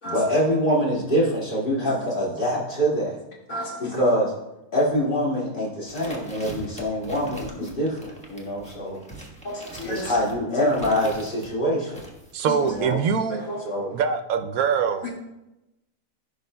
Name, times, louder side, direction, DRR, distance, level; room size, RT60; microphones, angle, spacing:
voice 1, 0.0-3.2 3.8-4.3 4.7-9.0 9.9-12.0 12.6-13.0 13.6-13.9, equal, 35° left, -5 dB, 2.4 m, -24 dB
voice 2, 3.5-4.0 9.4-10.2 12.5-12.7 13.3-13.6 15.0-15.1, equal, 65° left, -4 dB, 2.5 m, -33 dB
sound 1, 5.9-11.5 11.9-13.1, right 1 dB, 5° left, 1.1 m, -42 dB
voice 3, 12.3-13.4 13.9-15.1, right 6 dB, 80° right, 9 dB, 1.0 m, -23 dB
16.0 x 5.5 x 2.2 m, 0.94 s
omnidirectional pair, 1.5 m